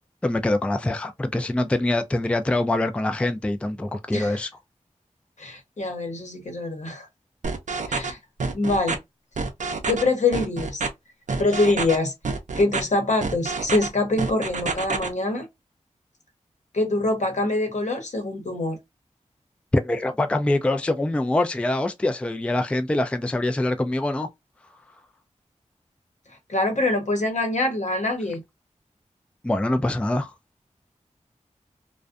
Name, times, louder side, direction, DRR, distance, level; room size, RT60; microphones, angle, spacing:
voice 1, 0.2-4.5 19.7-24.3 29.4-30.3, left 1 dB, 10° left, 0.3 m, -24 dB
voice 2, 5.4-7.1 7.9-8.2 8.5-9.0 9.9-10.8 11.4-12.1 12.6-15.5 16.7-18.8 26.5-28.4, left 2 dB, 70° left, 0.9 m, -24 dB
sound 1, 7.4-8.1 8.4-9.0 9.4-10.0 10.3-10.9 11.3-12.0 12.2-12.8 13.2-13.9 14.2-15.1, right 4 dB, 75° right, 0.5 m, -27 dB
2.4 x 2.2 x 2.4 m
cardioid pair, 45°, 13 cm